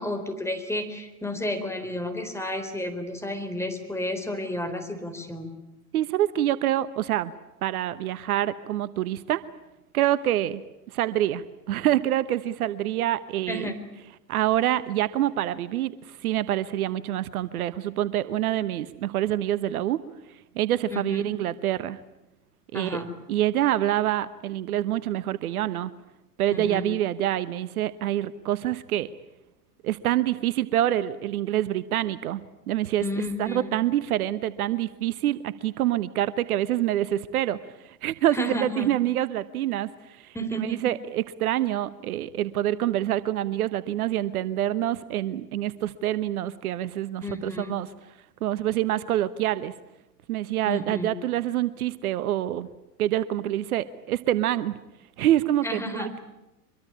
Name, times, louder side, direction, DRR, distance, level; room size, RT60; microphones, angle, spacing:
voice 1, 0.0-5.6 13.5-13.8 20.9-21.3 22.7-23.1 26.5-26.9 33.0-33.7 38.3-38.9 40.3-40.8 47.2-47.8 50.7-51.1 55.6-56.1, left 1 dB, 5° left, 7 dB, 4.0 m, -32 dB
voice 2, 5.9-7.3 7.6-9.4 9.9-10.6 10.9-13.7 14.3-20.0 20.5-22.0 22.7-23.0 23.3-25.9 26.4-29.1 29.8-32.4 32.7-33.0 33.4-37.6 37.8-39.9 40.2-47.9 48.4-49.7 50.3-52.7 53.0-54.8 55.2-56.2, right 12 dB, 65° right, 15 dB, 1.1 m, -26 dB
24.5 x 23.0 x 8.8 m, 0.95 s
hypercardioid pair, 95°, 47 cm